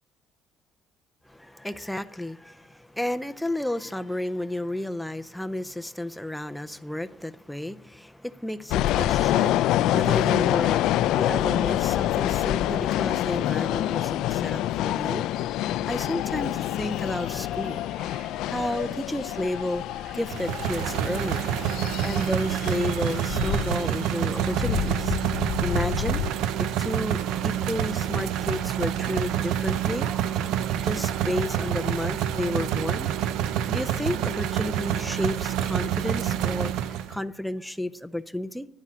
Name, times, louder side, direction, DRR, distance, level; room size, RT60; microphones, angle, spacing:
voice 1, 1.3-15.3 15.9-17.9 18.5-19.8 20.1-21.4 21.7-25.2 25.6-26.2 26.6-27.2 27.4-30.1 30.8-33.1 33.7-38.7, left 1 dB, ahead, 0.4 m, -32 dB
sound 1, 8.7-26.3, left 13 dB, 70° left, 0.3 m, -27 dB
sound 2, 16.3-26.5 26.9-29.4 29.8-32.4, right 5 dB, 45° right, 1.3 m, -49 dB
sound 3, 20.3-37.2, right 10 dB, 75° right, 0.6 m, -27 dB
9.9 x 9.9 x 6.1 m
cardioid pair, 155°, 0 cm